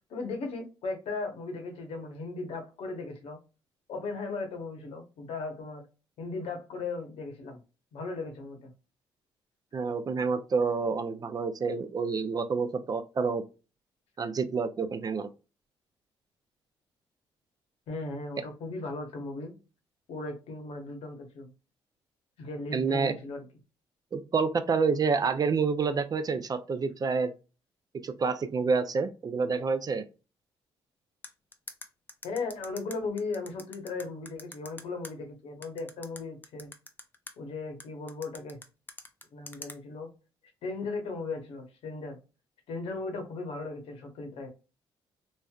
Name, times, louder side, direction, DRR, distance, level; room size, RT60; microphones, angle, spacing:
voice 1, 0.1-3.4 3.9-5.9 6.2-7.6 7.9-8.7 17.9-19.6 20.1-21.5 22.4-23.4 32.2-36.7 37.4-38.6 39.3-40.1 40.6-42.2 42.7-44.5, left 3 dB, 75° left, 1.0 m, -37 dB
voice 2, 9.7-13.4 14.2-15.3 22.7-23.1 24.1-27.3 28.0-30.0, right 5 dB, 40° right, 0.5 m, -28 dB
sound 1, 31.2-35.1 35.6-37.3 37.8-39.8, left 2 dB, 20° left, 0.6 m, -44 dB
3.1 x 2.5 x 2.3 m
cardioid pair, 75°, 10 cm